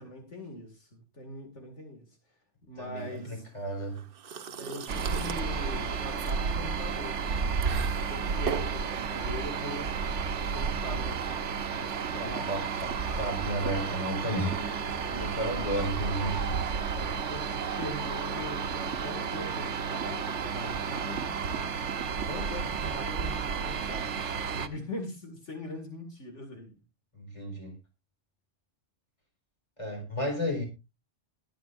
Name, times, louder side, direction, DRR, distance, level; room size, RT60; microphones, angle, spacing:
voice 1, 0.0-2.2 2.7-3.4 4.6-7.7 8.1-10.0 10.5-12.5 15.1-15.5 17.0-21.4 22.2-26.7, left 1 dB, 75° left, 2.6 m, -42 dB
voice 2, 2.8-4.0 12.2-14.6 15.2-16.6 27.1-27.8 29.8-30.7, right 1 dB, 25° left, 4.4 m, -33 dB
sound 1, 3.0-13.9, right 6 dB, 55° right, 0.9 m, -42 dB
sound 2, 4.9-24.7, right 6 dB, 75° right, 1.2 m, -32 dB
Guitar, 14.3-17.1, right 1 dB, ahead, 6.6 m, -43 dB
21.0 x 7.8 x 2.6 m
omnidirectional pair, 1.2 m